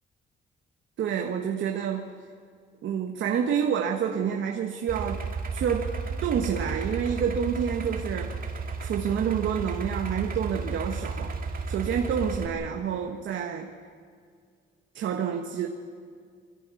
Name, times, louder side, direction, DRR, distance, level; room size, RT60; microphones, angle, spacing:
voice 1, 1.0-2.1 2.8-5.2 5.5-5.9 6.2-8.4 8.8-11.4 11.7-13.8 14.9-15.7, right 8 dB, 70° right, 2 dB, 1.4 m, -28 dB
Idling, 4.9-12.5, right 4 dB, 45° right, 2.2 m, -33 dB
23.5 x 15.5 x 8.5 m, 2.1 s
cardioid pair, 90°, 20 cm